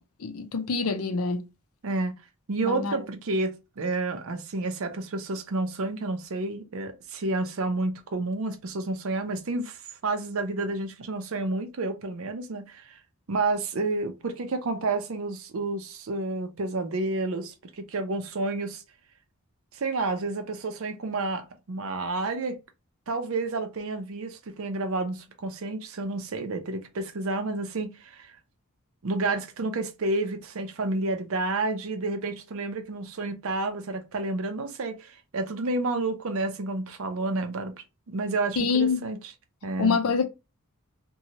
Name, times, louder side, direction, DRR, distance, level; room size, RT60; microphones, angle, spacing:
voice 1, 0.2-1.4 2.6-3.0 38.6-39.0 39.8-40.3, left 5 dB, 75° left, 0.5 m, -25 dB
voice 2, 1.8-2.2 2.5-13.0 13.3-18.8 19.7-22.6 23.1-28.3 29.0-37.7 38.1-39.2 39.6-40.0, right 2 dB, 65° right, 0.5 m, -30 dB
2.8 x 2.2 x 2.8 m
head